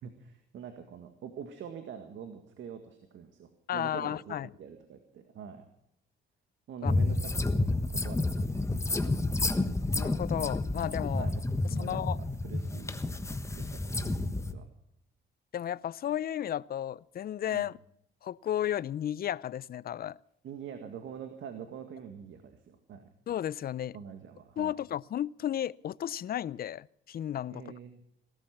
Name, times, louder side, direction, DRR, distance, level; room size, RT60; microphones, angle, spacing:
voice 1, 0.0-5.7 6.7-7.7 8.0-8.4 8.9-9.0 11.1-11.4 11.7-12.9 13.3-14.6 17.5-17.7 20.4-23.1 23.9-24.7 27.5-28.0, right 7 dB, 75° right, 7 dB, 1.9 m, -45 dB
voice 2, 3.7-4.5 6.8-6.9 9.9-11.3 11.8-12.2 15.5-17.8 18.2-20.2 23.3-24.0 24.6-27.6, left 11 dB, 50° left, 22 dB, 0.5 m, -33 dB
sound 1, 6.8-14.5, left 2 dB, 15° left, 1.3 m, -30 dB
18.0 x 13.0 x 6.0 m, 0.74 s
cardioid pair, 90°, 20 cm